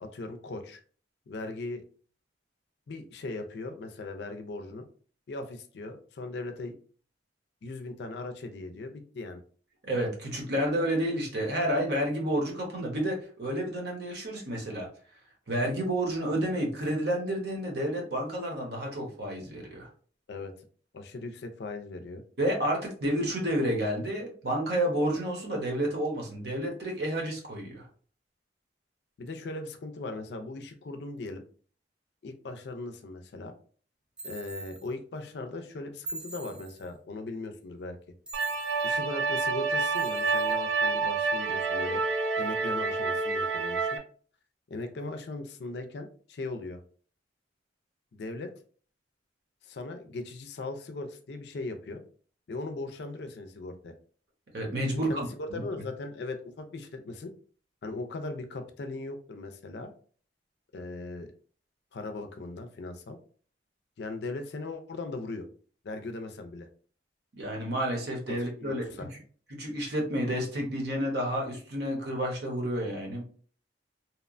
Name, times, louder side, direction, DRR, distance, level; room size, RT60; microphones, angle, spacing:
voice 1, 0.0-0.8 1.3-1.8 2.9-4.8 5.3-6.7 7.6-9.4 20.3-20.5 20.9-22.2 29.2-31.4 32.2-33.5 34.2-38.0 38.8-42.0 42.4-44.0 44.7-46.8 48.1-48.5 49.6-52.0 52.5-53.9 54.9-57.3 57.8-59.9 60.7-61.3 61.9-63.2 64.0-65.5 65.8-66.7 68.3-69.1, left 2 dB, 65° left, 7 dB, 0.4 m, -39 dB
voice 2, 9.8-14.9 15.5-19.9 22.4-27.9 54.5-55.3 55.5-55.6 67.4-68.8 69.5-73.2, right 1 dB, 60° right, 0 dB, 0.8 m, -30 dB
sound 1, 34.2-34.9 36.1-36.9 38.3-39.0 39.9-40.6, right 2 dB, 5° right, 0.5 m, -42 dB
sound 2, 38.3-44.0, right 4 dB, 80° right, 0.4 m, -28 dB
2.8 x 2.1 x 2.4 m, 0.43 s
head